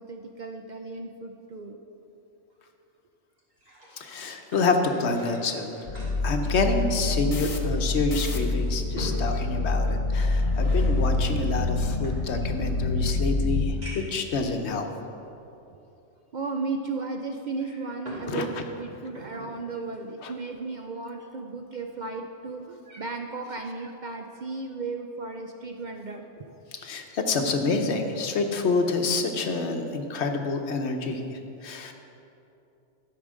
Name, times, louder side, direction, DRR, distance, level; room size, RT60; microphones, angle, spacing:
voice 1, 0.0-1.8 8.9-9.0 16.3-26.5, right 3 dB, 55° right, 4 dB, 0.6 m, -35 dB
sound 1, 3.4-7.4 7.7-7.8 8.4-10.4 11.3-12.7 13.3-13.4 13.8-14.2 15.0-15.1 17.4-18.3 18.6-19.5 19.9-20.1, equal, 35° right, 2.5 m, -43 dB
voice 2, 4.0-5.7 6.2-14.9 18.3-18.6 26.8-31.9, left 3 dB, 70° left, 5 dB, 1.1 m, -28 dB
sound 2, 5.9-13.6, left 2 dB, 35° left, 0.6 m, -26 dB
12.0 x 5.1 x 6.3 m, 2.8 s
omnidirectional pair, 1.2 m